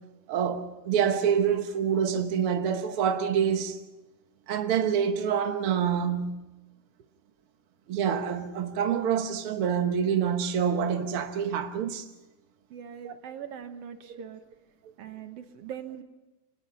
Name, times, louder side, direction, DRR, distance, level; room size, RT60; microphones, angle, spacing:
voice 1, 0.3-3.8 4.5-6.4 7.9-12.1 13.0-13.1, right 7 dB, 85° right, 1.2 m, -26 dB
voice 2, 12.7-14.4 15.0-16.0, right 8 dB, 70° right, 1.5 m, -41 dB
26.0 x 20.0 x 5.7 m
omnidirectional pair, 4.5 m